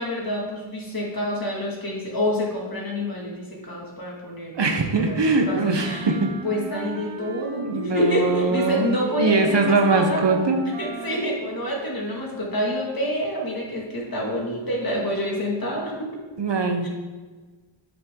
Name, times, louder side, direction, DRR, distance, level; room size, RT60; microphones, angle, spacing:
voice 1, 0.0-5.1 5.5-6.1 6.4-10.2 10.8-16.1, equal, 45° left, -2 dB, 2.3 m, -27 dB
voice 2, 4.5-6.3 7.6-10.6 16.4-16.9, right 3 dB, 60° right, 4 dB, 1.1 m, -22 dB
Wind instrument woodwind instrument, 5.7-7.9 8.2-11.3, right 5 dB, 85° right, 0.8 m, -36 dB
9.7 x 8.0 x 3.8 m, 1.3 s
wide cardioid pair, 110°, 49 cm